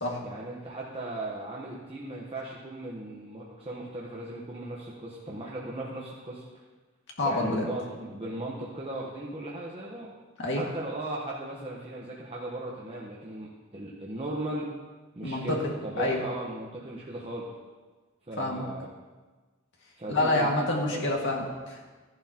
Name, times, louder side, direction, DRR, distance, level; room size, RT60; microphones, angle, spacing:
voice 1, 0.2-6.5 7.2-10.1 10.5-14.7 15.1-17.5 18.3-18.9 20.0-21.1, right 1 dB, 25° right, -4 dB, 1.1 m, -37 dB
voice 2, 7.2-7.7 10.4-10.6 15.2-16.2 18.4-18.7 20.1-21.9, left 2 dB, 60° left, -1 dB, 2.0 m, -28 dB
13.5 x 11.0 x 3.0 m, 1.3 s
head